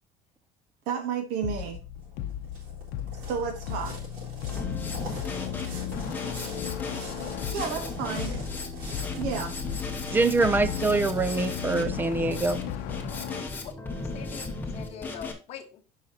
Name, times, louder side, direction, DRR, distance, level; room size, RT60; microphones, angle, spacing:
voice 1, 0.9-1.8 3.3-4.0 7.5-8.4 9.2-9.5, right 6 dB, 70° right, 1.3 m, -31 dB
sound 1, 1.4-13.4, left 11 dB, 65° left, 0.7 m, -36 dB
sound 2, 2.0-12.8, right 1 dB, 55° right, 4.2 m, -45 dB
Drum kit, 4.5-15.3, left 3 dB, 10° left, 1.1 m, -36 dB
voice 2, 10.1-12.6, right 3 dB, 10° right, 0.4 m, -24 dB
voice 3, 14.0-15.8, left 9 dB, 40° left, 1.0 m, -43 dB
8.9 x 5.7 x 2.8 m
cardioid pair, 170°, 17 cm